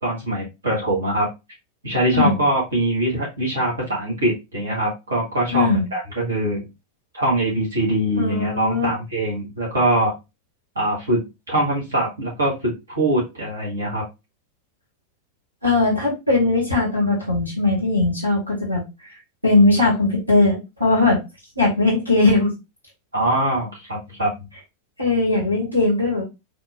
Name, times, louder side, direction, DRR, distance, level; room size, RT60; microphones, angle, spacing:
voice 1, 0.0-1.3 1.8-6.6 7.1-10.2 10.8-11.2 11.5-14.0 23.1-24.3, right 1 dB, 70° right, -4 dB, 1.9 m, -23 dB
voice 2, 5.5-5.9 8.2-8.9 15.6-18.8 19.4-21.2 21.6-22.5 25.0-26.2, left 3 dB, 90° right, -4 dB, 1.9 m, -19 dB
4.5 x 3.7 x 2.4 m, 0.24 s
figure-of-eight pair, 90°, 0 cm